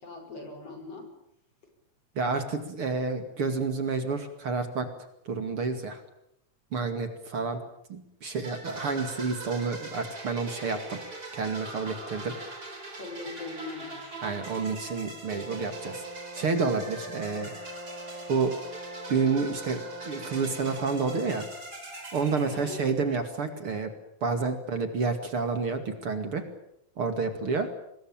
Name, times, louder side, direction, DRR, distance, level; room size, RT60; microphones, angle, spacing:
voice 1, 0.0-1.1 13.0-14.1 22.5-22.8, left 3 dB, 55° left, 6 dB, 6.2 m, -40 dB
voice 2, 2.2-4.9 5.3-6.0 6.7-7.6 7.9-11.0 11.3-12.3 14.2-16.0 16.3-17.5 18.3-18.5 19.1-21.4 22.1-23.9 24.2-26.4 27.0-27.7, right 4 dB, 50° right, 8 dB, 3.0 m, -29 dB
sound 1, 8.4-23.2, right 2 dB, 30° right, 5.1 m, -42 dB
Brass instrument, 15.3-21.5, equal, 25° left, 4.9 m, -43 dB
24.5 x 21.0 x 9.0 m, 0.76 s
omnidirectional pair, 3.3 m